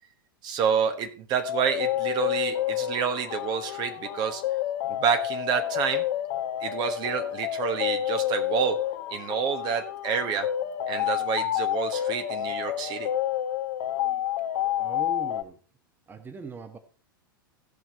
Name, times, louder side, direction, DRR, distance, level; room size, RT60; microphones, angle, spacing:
voice 1, 0.4-4.4 4.9-6.0 6.6-8.8 9.1-10.5 10.9-13.1, right 7 dB, 40° right, 8 dB, 1.3 m, -28 dB
sound 1, 1.4-15.4, left 12 dB, 55° left, 1.1 m, -29 dB
voice 2, 14.8-15.6 16.1-16.8, right 4 dB, 15° right, 9 dB, 1.2 m, -40 dB
16.5 x 6.0 x 4.2 m, 0.39 s
figure-of-eight pair, 95°, 12 cm